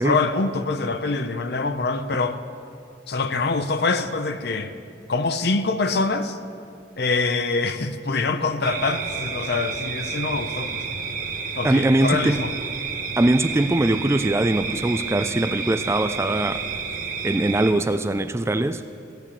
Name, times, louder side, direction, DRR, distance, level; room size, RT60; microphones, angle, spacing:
voice 1, 0.0-2.4 3.1-4.7 5.1-6.4 7.0-10.8 11.6-12.5, left 3 dB, 60° left, 10 dB, 0.7 m, -24 dB
sound 1, 8.6-17.7, right 5 dB, 45° right, 1.1 m, -30 dB
voice 2, 11.6-12.4 13.2-16.6 17.2-18.8, right 1 dB, 15° right, 10 dB, 0.3 m, -21 dB
16.5 x 8.4 x 7.4 m, 2.6 s
head